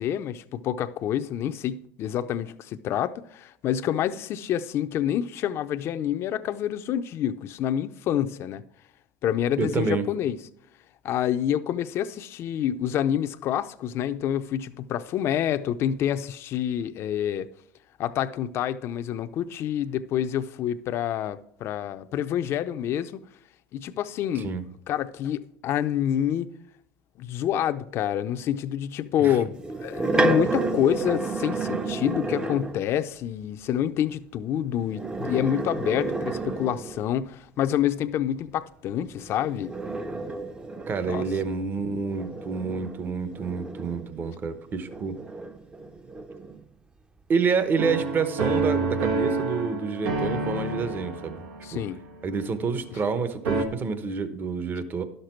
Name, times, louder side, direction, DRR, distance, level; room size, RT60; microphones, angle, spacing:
voice 1, 0.0-8.6 9.2-10.4 11.0-17.5 18.0-23.1 23.7-24.5 24.9-26.5 27.2-39.7 41.1-41.2 51.6-52.0, left 10 dB, 50° left, 0.5 m, -27 dB
voice 2, 9.6-10.1 24.3-24.6 29.2-29.4 40.9-45.2 47.3-51.4 51.7-51.8 52.2-55.0, right 5 dB, 35° right, 1.0 m, -28 dB
sound 1, 29.6-32.9 34.8-37.2 39.1-44.3 44.9-46.6, right 2 dB, 15° right, 0.7 m, -31 dB
sound 2, 47.8-53.1 53.4-53.6, right 3 dB, 90° right, 1.3 m, -29 dB
11.5 x 6.6 x 4.5 m
supercardioid pair, 95°, 5 cm